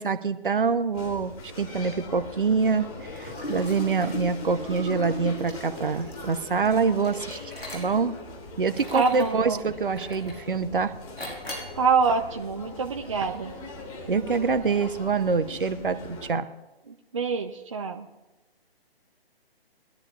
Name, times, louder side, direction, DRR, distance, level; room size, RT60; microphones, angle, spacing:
voice 1, 0.0-2.9 3.1-7.4 7.7-8.2 8.6-10.9 14.1-16.5, right 5 dB, 55° right, 10 dB, 0.9 m, -25 dB
sound 1, 0.9-16.3, left 2 dB, 35° left, 3.0 m, -42 dB
Liquid, 3.2-8.2 8.6-9.4 10.0-10.5 11.2-11.8, left 1 dB, 80° left, 5.5 m, -38 dB
voice 2, 8.9-9.6 11.8-13.5 16.9-18.1, right 5 dB, 30° right, 3 dB, 0.5 m, -26 dB
22.0 x 12.0 x 2.5 m, 1.1 s
figure-of-eight pair, 140°, 31 cm